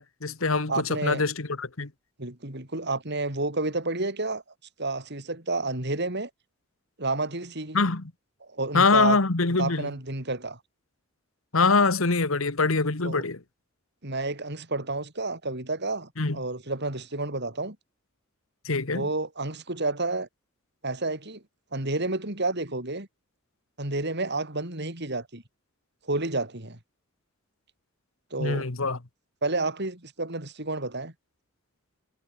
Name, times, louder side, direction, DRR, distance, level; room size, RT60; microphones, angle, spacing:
voice 1, 0.0-1.9 7.7-8.0 8.7-9.9 11.5-13.4 16.2-16.4 18.6-19.1 28.4-29.0, left 4 dB, 80° left, 1.6 m, -24 dB
voice 2, 0.7-1.2 2.2-4.4 4.8-6.3 7.0-7.8 8.5-9.2 9.6-10.6 13.0-13.2 14.0-17.8 18.9-20.3 20.8-21.4 21.7-23.1 23.8-25.4 26.1-26.8 28.3-28.7 29.4-31.1, right 2 dB, 55° right, 5.1 m, -30 dB
head